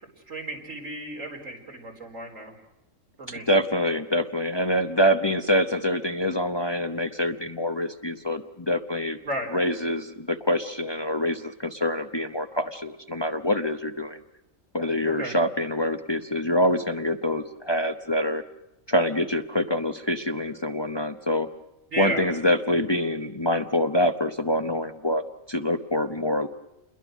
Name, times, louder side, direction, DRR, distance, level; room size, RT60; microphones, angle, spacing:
voice 1, 0.3-2.6 3.2-3.5 9.2-9.5 15.2-15.4 21.9-22.3, right 2 dB, 85° right, 1 dB, 4.6 m, -33 dB
voice 2, 3.5-9.2 9.5-14.2 14.7-18.4 18.9-21.5 22.0-26.5, left 1 dB, 20° left, 7 dB, 0.9 m, -25 dB
28.5 x 22.0 x 6.3 m, 0.92 s
omnidirectional pair, 1.3 m